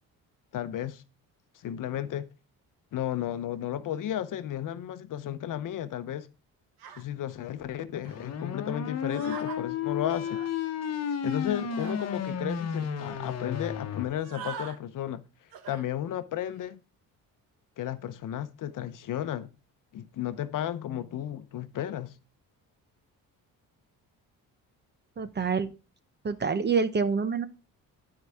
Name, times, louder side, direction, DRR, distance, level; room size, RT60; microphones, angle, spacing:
voice 1, 0.5-1.0 1.5-2.3 2.9-6.3 7.0-10.4 11.2-15.2 15.7-16.8 17.8-19.5 19.9-22.1, left 11 dB, 60° left, 0.8 m, -33 dB
sound 1, 6.8-7.0 8.0-8.2 9.1-9.6 10.1-10.5 11.7-12.1 12.7-12.8 13.0-13.2 14.1-14.8 15.5-15.8 16.4-16.7, right 7 dB, 85° right, 1.4 m, -43 dB
sound 2, 8.1-14.0, left 7 dB, 45° left, 1.2 m, -32 dB
voice 2, 25.2-25.7 26.2-27.5, right 5 dB, 30° right, 0.9 m, -26 dB
12.0 x 4.8 x 3.5 m
cardioid pair, 100°, 35 cm